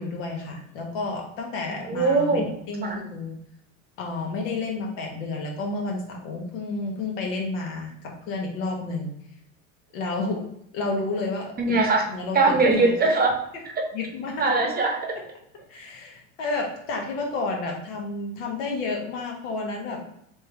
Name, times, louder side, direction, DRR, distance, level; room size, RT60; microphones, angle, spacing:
voice 1, 0.0-3.4 4.0-9.1 9.9-10.5 10.7-12.9 13.9-14.5 15.7-20.0, left 3 dB, 85° left, 1 dB, 1.2 m, -31 dB
voice 2, 1.9-2.5 2.8-3.0 11.6-12.1 12.3-13.3 14.4-15.2, right 3 dB, 25° right, 2 dB, 0.7 m, -21 dB
3.4 x 3.2 x 3.2 m, 0.72 s
supercardioid pair, 115°, 38 cm